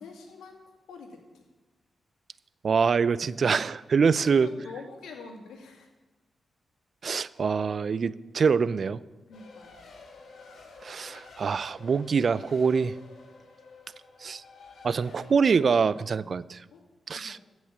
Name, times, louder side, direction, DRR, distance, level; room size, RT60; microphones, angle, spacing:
voice 1, 0.0-1.4 4.2-5.9 9.3-9.9 16.7-16.9 17.1-17.4, left 4 dB, 90° left, 3 dB, 2.3 m, -45 dB
voice 2, 2.6-4.5 7.0-9.0 10.8-12.9 14.2-14.4 14.8-16.6 17.1-17.4, right 5 dB, 60° right, 18 dB, 0.5 m, -25 dB
Race car auto racing, 9.3-16.0, left 4 dB, 70° left, 2.8 m, -50 dB
15.0 x 6.3 x 8.9 m, 1.2 s
cardioid pair, 55°, 0 cm